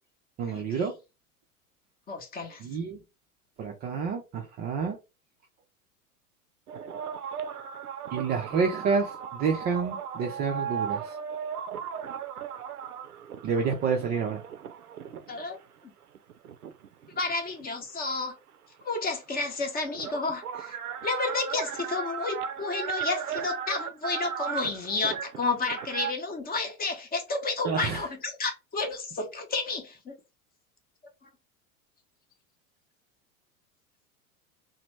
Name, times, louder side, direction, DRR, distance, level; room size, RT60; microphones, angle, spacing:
voice 1, 0.4-0.9 2.6-3.0 3.6-5.0 8.1-11.2 13.4-14.4 27.6-28.0, right 5 dB, 25° right, 0.4 m, -29 dB
voice 2, 2.1-2.6 15.3-15.6 17.2-18.4 18.8-20.8 21.0-30.1, left 3 dB, 20° left, 0.8 m, -31 dB
sound 1, 6.7-15.5 16.1-17.9 19.1-19.2 19.3-26.1, right 8 dB, 85° right, 0.5 m, -36 dB
2.9 x 2.1 x 3.2 m
figure-of-eight pair, 85°, 44 cm